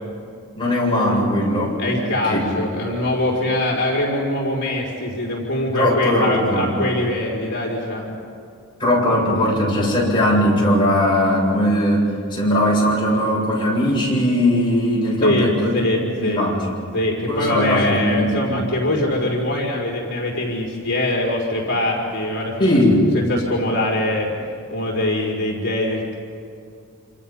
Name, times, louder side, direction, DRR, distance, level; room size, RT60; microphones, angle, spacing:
voice 1, 0.6-1.8 2.3-2.4 5.7-6.7 8.8-15.8 16.2-16.6 17.3-18.5 22.6-23.1, equal, 20° left, -4 dB, 8.0 m, -19 dB
voice 2, 1.8-8.2 15.2-16.4 16.9-22.7 23.1-24.3 24.7-26.2, left 1 dB, 55° left, -3 dB, 5.3 m, -23 dB
28.0 x 27.5 x 5.7 m, 2.4 s
head